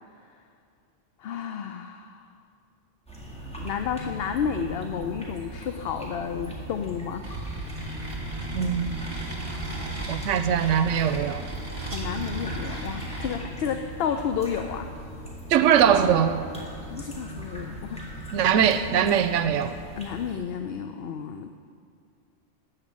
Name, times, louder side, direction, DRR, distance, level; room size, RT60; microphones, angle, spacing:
voice 1, 1.2-2.3 3.6-7.3 11.9-14.9 16.8-18.0 20.0-21.5, left 7 dB, 65° left, 7 dB, 0.7 m, -31 dB
sound 1, 3.1-20.3, right 1 dB, 5° left, 1.8 m, -38 dB
sound 2, 7.2-13.4, right 2 dB, 30° right, 1.2 m, -36 dB
voice 2, 8.5-9.0 10.1-11.4 15.5-16.4 18.3-19.7, right 8 dB, 90° right, 11 dB, 0.9 m, -21 dB
13.5 x 5.1 x 8.6 m, 2.3 s
omnidirectional pair, 1.2 m